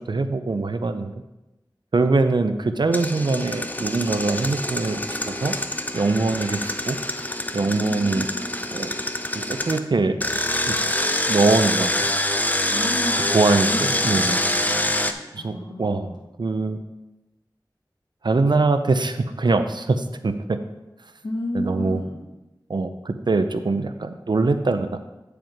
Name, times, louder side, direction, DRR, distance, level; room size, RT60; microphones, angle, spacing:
voice 1, 0.1-1.1 1.9-5.5 5.9-7.0 7.5-8.3 8.7-8.9 9.3-10.2 10.7-10.8 11.3-12.1 13.3-14.4 15.3-16.1 16.4-16.8 18.2-20.6 21.5-22.0 22.7-25.0, right 3 dB, 70° right, 9 dB, 0.6 m, -23 dB
Engine, 2.9-9.8 10.2-15.1, left 1 dB, 20° left, 0.6 m, -25 dB
voice 2, 7.6-8.7 12.7-16.2 21.2-22.2, left 1 dB, 70° left, -1 dB, 1.8 m, -33 dB
8.9 x 5.0 x 4.6 m, 1.0 s
wide cardioid pair, 60°, 8 cm